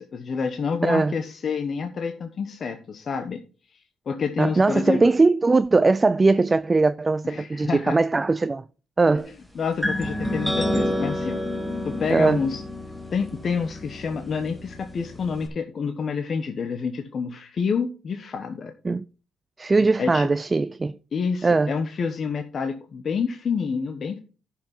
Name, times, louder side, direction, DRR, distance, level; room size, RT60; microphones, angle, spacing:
voice 1, 0.0-3.4 3.7-3.8 4.1-5.0 7.2-8.0 9.1-9.2 9.5-11.4 11.8-12.6 13.1-18.7 19.8-20.3 21.1-24.2, left 5 dB, 50° left, 1.0 m, -28 dB
voice 2, 0.8-1.2 4.4-8.6 9.0-9.3 12.1-12.5 18.8-19.0 19.6-20.9 21.4-21.7, right 3 dB, 25° right, 0.4 m, -20 dB
sound 1, 9.8-15.5, left 1 dB, ahead, 2.1 m, -29 dB
10.0 x 5.8 x 5.4 m
cardioid pair, 90°, 0 cm